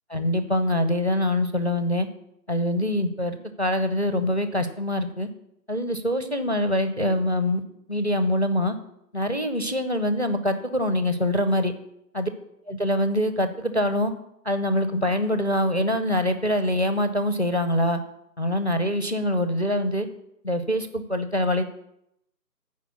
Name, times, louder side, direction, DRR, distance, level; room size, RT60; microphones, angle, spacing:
voice 1, 0.1-2.1 2.5-5.3 5.7-7.6 7.9-8.8 9.1-11.7 12.1-12.3 12.7-14.1 14.4-18.0 18.4-20.1 20.4-21.6, left 1 dB, 45° left, 10 dB, 0.5 m, -24 dB
8.1 x 4.9 x 6.9 m, 0.78 s
figure-of-eight pair, 175°, 50 cm